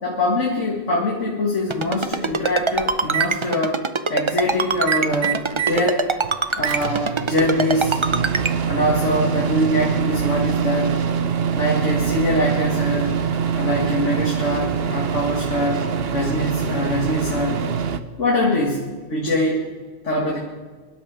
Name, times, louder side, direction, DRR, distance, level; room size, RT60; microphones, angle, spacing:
voice 1, 0.0-3.8 4.1-6.0 6.6-8.0 8.7-11.0 11.5-13.2 13.5-15.9 16.1-17.6 18.2-19.6 20.0-20.4, left 1 dB, 85° left, -2 dB, 2.5 m, -23 dB
Ringtone, 1.7-8.5, right 4 dB, 30° right, 0.7 m, -22 dB
Microwave oven, 1.8-1.9 2.3-3.3 4.7-5.8 6.2-18.0, right 7 dB, 60° right, 1.0 m, -24 dB
23.5 x 12.0 x 5.0 m, 1.5 s
omnidirectional pair, 1.2 m